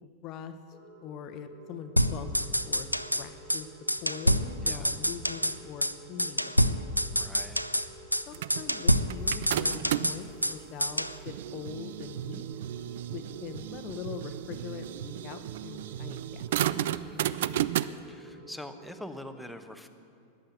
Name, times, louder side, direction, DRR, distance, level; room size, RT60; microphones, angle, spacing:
voice 1, 0.0-0.5 1.0-2.3 2.6-2.9 3.2-3.7 4.0-6.5 8.3-12.4 13.1-16.4, left 7 dB, 40° left, 9 dB, 0.9 m, -42 dB
sound 1, 0.7-19.4, right 2 dB, 15° right, 2.2 m, -52 dB
sound 2, 2.0-3.2 3.5-3.6 3.9-5.6 5.8-5.9 6.2-7.9 8.1-8.2 8.5-10.6 10.8-11.2, equal, 90° left, 0.5 m, -27 dB
voice 2, 7.1-7.6 16.9-17.3 18.1-19.9, left 1 dB, ahead, 7 dB, 1.0 m, -44 dB
sound 3, 8.3-10.3 10.9-17.9, right 12 dB, 55° right, 0.4 m, -33 dB
14.5 x 10.0 x 9.1 m, 2.5 s
figure-of-eight pair, 90°, 0 cm